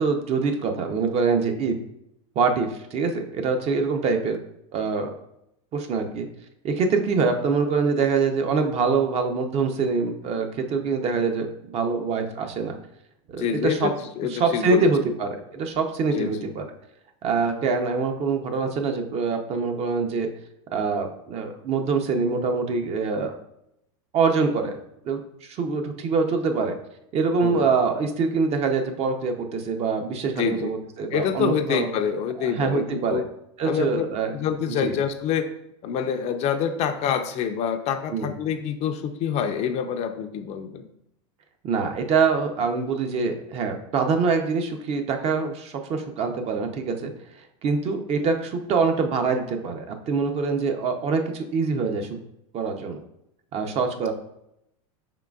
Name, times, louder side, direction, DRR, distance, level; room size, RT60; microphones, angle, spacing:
voice 1, 0.0-1.7 2.4-4.4 4.7-5.1 5.7-6.3 6.6-12.8 13.3-13.9 14.3-16.6 17.2-20.3 20.7-23.3 24.1-24.8 25.0-25.2 25.5-26.8 27.1-31.9 32.4-33.2 33.6-34.3 34.8-34.9 38.1-38.3 41.6-47.1 47.6-52.1 52.5-53.0 53.5-54.1, right 4 dB, 40° right, 5 dB, 0.6 m, -24 dB
voice 2, 13.4-14.9 16.1-16.5 27.4-27.7 30.4-30.7 31.1-33.2 33.6-34.1 34.3-35.5 35.8-40.9, left 8 dB, 40° left, 6 dB, 0.4 m, -26 dB
4.9 x 3.7 x 2.3 m, 0.80 s
supercardioid pair, 120°, 17 cm